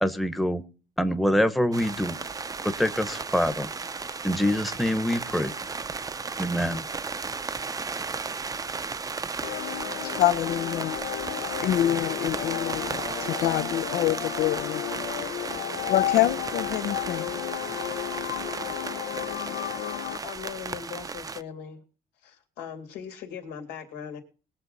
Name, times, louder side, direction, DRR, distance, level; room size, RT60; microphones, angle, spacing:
voice 1, 0.0-0.6 1.0-2.2 2.6-3.7 4.2-5.5 6.4-6.8, equal, ahead, 0.9 m, -25 dB
sound 1, 1.7-21.4, right 4 dB, 20° right, 0.6 m, -34 dB
voice 2, 9.4-20.2, left 13 dB, 70° left, 0.6 m, -27 dB
voice 3, 20.2-21.8 22.2-24.2, left 8 dB, 90° left, 2.9 m, -39 dB
21.0 x 7.4 x 4.0 m
cardioid pair, 110°, 17 cm